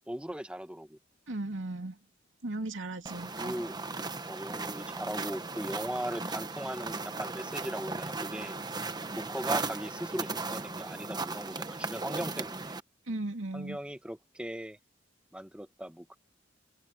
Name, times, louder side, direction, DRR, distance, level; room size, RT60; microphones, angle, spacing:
voice 1, 0.1-1.0 3.4-3.8 4.3-8.5 9.1-12.7 13.5-14.8 15.3-16.0, right 1 dB, 5° right, 1.5 m, -38 dB
voice 2, 1.3-2.0 2.4-3.6 13.1-13.8, right 2 dB, 80° right, 2.7 m, -36 dB
sound 1, 3.1-12.8, right 3 dB, 20° right, 1.1 m, -37 dB
open air
head